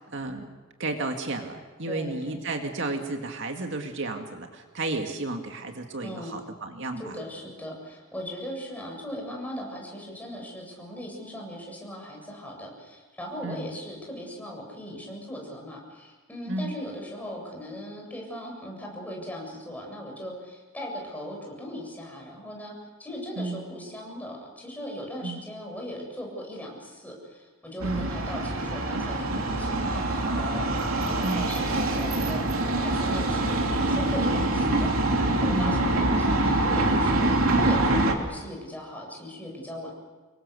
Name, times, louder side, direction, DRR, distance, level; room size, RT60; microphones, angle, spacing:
voice 1, 0.1-0.5 0.8-7.1 13.4-13.7 16.5-16.7 23.4-23.6 25.2-25.4 27.8-28.1 31.2-31.5 35.5-35.8, right 2 dB, 60° right, 4 dB, 2.1 m, -32 dB
voice 2, 1.9-2.4 6.0-6.4 7.0-22.7 23.0-32.5 32.8-39.9, equal, 10° left, -1 dB, 7.6 m, -39 dB
sound 1, 27.8-38.1, right 2 dB, 90° right, 3.1 m, -25 dB
27.5 x 22.5 x 6.8 m, 1.3 s
head